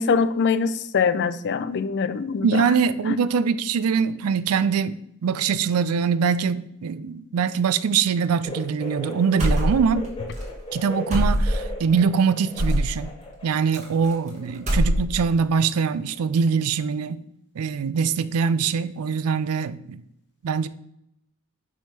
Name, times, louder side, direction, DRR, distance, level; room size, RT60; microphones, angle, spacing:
voice 1, 0.0-2.5 3.1-3.2, left 5 dB, 55° left, 0.4 m, -23 dB
voice 2, 2.4-10.1 10.7-13.1 13.4-17.2 17.6-20.0 20.4-20.7, right 6 dB, 90° right, 0.4 m, -23 dB
sound 1, 8.4-13.5 13.8-14.8 15.0-15.2 16.2-16.3, left 1 dB, 25° left, 1.5 m, -37 dB
sound 2, 9.4-10.1 10.3-10.5 11.1-11.7 12.6-12.9 13.7-14.3 14.5-15.3, equal, 35° right, 1.9 m, -22 dB
6.0 x 3.6 x 5.7 m
head